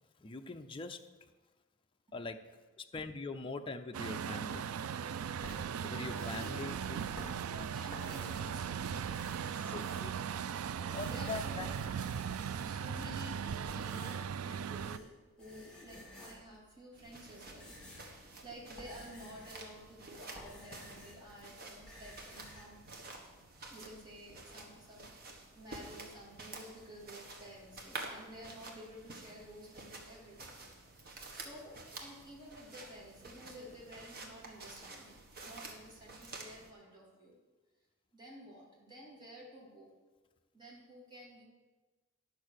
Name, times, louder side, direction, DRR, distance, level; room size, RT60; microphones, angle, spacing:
voice 1, 0.2-1.1 2.1-2.5 2.8-4.7 5.8-7.0 9.7-10.1 10.6-11.7, left 3 dB, 25° left, 5 dB, 0.5 m, -42 dB
Truck, 3.9-15.0, right 7 dB, 80° right, 0.4 m, -38 dB
sound 1, 5.3-8.6 8.9-10.4 10.8-12.9 13.5-15.1 15.4-16.6 17.2-21.4 21.6-22.7, left 1 dB, 5° left, 2.7 m, -53 dB
voice 2, 5.4-7.0 7.5-10.1 11.0-11.7 12.5-15.1 15.4-22.8 23.7-30.6 31.3-35.1 35.4-37.4 38.1-39.9 40.5-41.4, equal, 20° right, -5 dB, 2.7 m, -52 dB
sound 2, 16.9-36.7, right 2 dB, 45° right, 1.5 m, -50 dB
10.5 x 6.2 x 6.4 m, 1.2 s
head